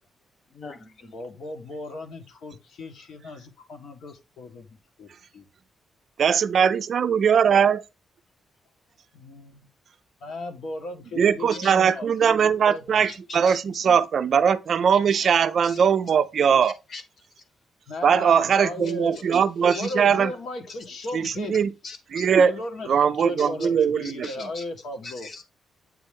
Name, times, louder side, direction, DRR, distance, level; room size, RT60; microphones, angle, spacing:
voice 1, 0.5-1.1 11.6-11.7 13.0-13.6 15.1-15.3 15.6-15.8 16.6-17.0 18.8-19.9 20.7-20.8 21.2-21.3 21.8-22.3 23.4-23.5 24.0-24.6 25.0-25.4, left 3 dB, 40° left, 1.3 m, -41 dB
voice 2, 1.1-5.4 9.1-9.6 10.2-13.1 17.9-19.3 19.8-21.6 22.4-25.3, left 2 dB, 65° left, 1.4 m, -36 dB
voice 3, 6.2-7.8 11.2-16.7 18.0-20.3 21.1-21.7 22.1-22.5 22.9-24.3, right 7 dB, 50° right, 0.4 m, -20 dB
8.1 x 4.3 x 3.5 m
wide cardioid pair, 175°, 0 cm